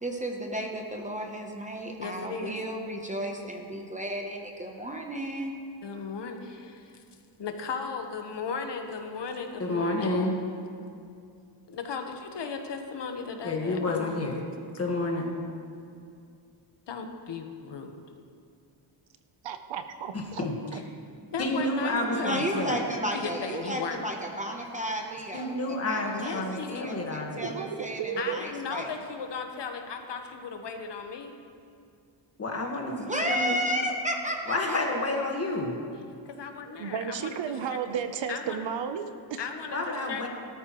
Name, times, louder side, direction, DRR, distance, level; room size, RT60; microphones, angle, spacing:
voice 1, 0.0-5.5 22.2-28.9 33.0-34.8, right 1 dB, 15° right, 1 dB, 0.8 m, -33 dB
voice 2, 2.0-2.6 5.8-7.0 7.4-10.2 11.7-14.2 16.9-18.0 21.3-22.5 23.1-24.1 26.2-26.8 28.2-31.3 36.3-37.4 37.7-37.8 38.3-38.6 39.4-40.3, left 5 dB, 55° left, 4 dB, 1.2 m, -36 dB
voice 3, 9.6-10.4 13.4-14.4 14.8-15.3 20.1-20.8 21.4-22.8 25.3-27.5 32.4-33.6 34.5-35.8 39.7-40.3, left 2 dB, 30° left, 1 dB, 1.6 m, -30 dB
voice 4, 19.5-20.5 20.7-20.8 27.4-28.4 36.8-39.4, right 7 dB, 65° right, 8 dB, 0.8 m, -33 dB
18.5 x 13.0 x 3.1 m, 2.4 s
wide cardioid pair, 180°, 49 cm